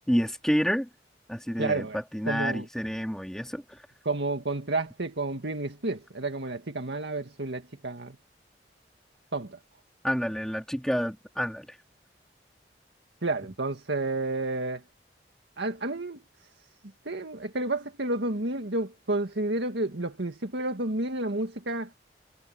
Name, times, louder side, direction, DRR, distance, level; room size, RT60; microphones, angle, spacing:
voice 1, 0.1-0.9 1.3-1.9 2.1-3.8 10.0-11.8, equal, 5° left, 3.6 m, -29 dB
voice 2, 1.6-2.0 2.3-2.7 4.1-8.2 9.3-9.6 13.2-14.8 15.6-16.2 17.1-21.9, right 2 dB, 85° right, 1.9 m, -30 dB
head